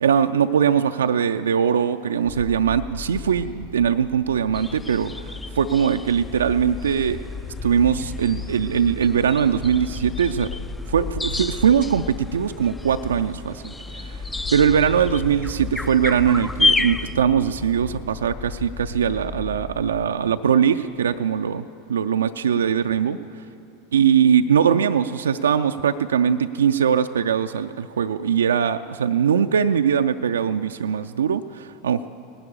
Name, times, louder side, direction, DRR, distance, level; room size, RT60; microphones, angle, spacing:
voice 1, 0.0-5.1 5.6-7.2 7.6-10.5 10.9-14.2 14.5-21.6 21.9-23.2 23.9-32.1, right 8 dB, 70° right, 8 dB, 0.3 m, -21 dB
sound 1, 2.2-20.1, left 5 dB, 45° left, 2.3 m, -37 dB
sound 2, 4.5-17.2, left 3 dB, 10° left, 0.4 m, -30 dB
18.5 x 11.0 x 7.0 m, 2.6 s
figure-of-eight pair, 85°, 0 cm